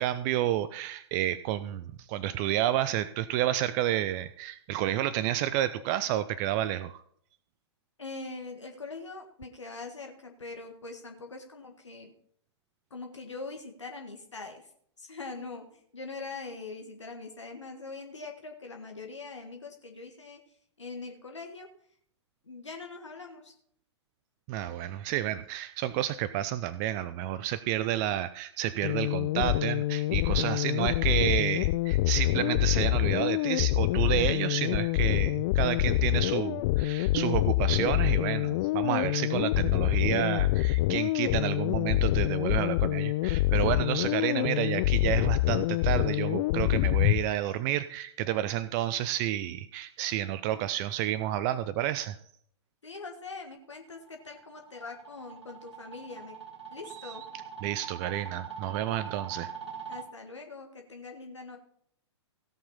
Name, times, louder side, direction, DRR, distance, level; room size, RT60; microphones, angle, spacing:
voice 1, 0.0-7.0 24.5-52.2 56.9-57.2 57.6-59.5, right 13 dB, 35° right, 15 dB, 0.5 m, -30 dB
voice 2, 8.0-12.1 12.9-14.7 15.0-20.4 20.8-21.7 22.5-23.5 52.8-56.4 56.7-57.2 59.9-61.6, left 3 dB, 80° left, 3 dB, 1.6 m, -42 dB
sound 1, 28.8-47.3, left 17 dB, 40° left, 0.4 m, -26 dB
sound 2, 53.9-60.0, right 7 dB, 75° right, 2.0 m, -43 dB
17.0 x 5.8 x 5.5 m, 0.64 s
figure-of-eight pair, 105°, 15 cm